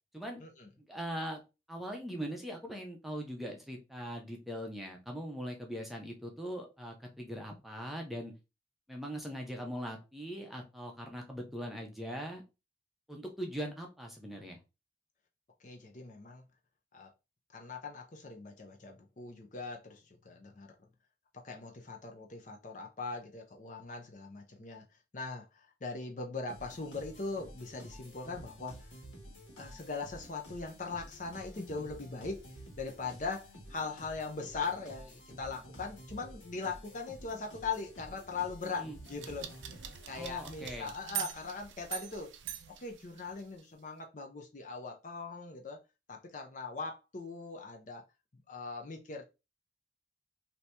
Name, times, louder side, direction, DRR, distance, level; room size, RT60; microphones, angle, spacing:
voice 1, 0.9-1.4 1.7-8.3 8.9-12.4 13.1-14.6 38.8-39.0 40.2-40.9, equal, ahead, 0.6 m, -41 dB
voice 2, 15.6-16.4 16.9-17.1 17.5-20.7 21.3-24.9 25.1-28.9 29.6-32.4 32.8-39.8 40.1-42.3 42.7-45.8 46.1-48.0 48.3-49.2, left 4 dB, 40° left, 0.5 m, -40 dB
sound 1, 26.5-41.0, equal, 80° left, 1.5 m, -51 dB
sound 2, 39.0-43.6, right 12 dB, 75° right, 0.4 m, -43 dB
2.8 x 2.8 x 3.3 m
head